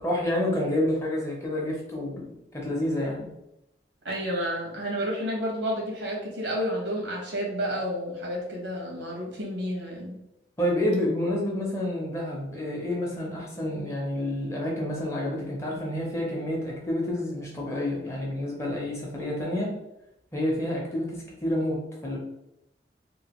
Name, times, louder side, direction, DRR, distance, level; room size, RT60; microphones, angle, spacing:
voice 1, 0.0-3.3 10.6-19.7 20.3-22.2, left 1 dB, 15° left, -2 dB, 0.6 m, -29 dB
voice 2, 4.0-10.2, equal, 90° right, -2 dB, 1.1 m, -30 dB
2.9 x 2.5 x 2.9 m, 0.87 s
head